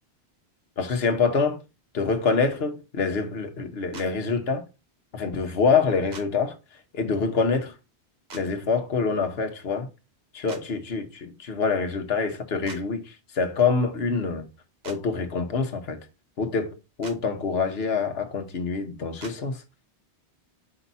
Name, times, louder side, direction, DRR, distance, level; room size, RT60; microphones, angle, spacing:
voice 1, 0.8-1.6 1.9-4.6 5.1-6.6 6.9-7.7 8.3-9.9 10.3-14.5 14.8-16.1 16.4-19.6, left 5 dB, 65° left, 1.3 m, -26 dB
sound 1, 3.9-4.1 6.1-6.3 8.3-8.4 10.5-10.6 12.6-12.8 14.8-15.0 17.0-17.2 19.2-19.4, right 4 dB, 45° right, 0.9 m, -42 dB
5.8 x 5.1 x 4.1 m
omnidirectional pair, 1.1 m